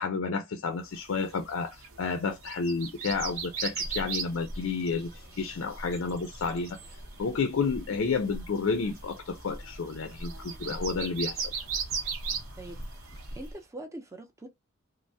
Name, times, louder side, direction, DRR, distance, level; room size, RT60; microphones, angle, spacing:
voice 1, 0.0-5.1 5.4-6.8 7.2-11.5, left 4 dB, 65° left, 0.4 m, -31 dB
sound 1, 1.0-13.5, right 6 dB, 70° right, 0.8 m, -39 dB
sound 2, 3.1-13.5, equal, 20° left, 0.7 m, -45 dB
voice 2, 13.3-14.5, right 1 dB, 15° right, 0.5 m, -42 dB
3.2 x 2.0 x 2.6 m
head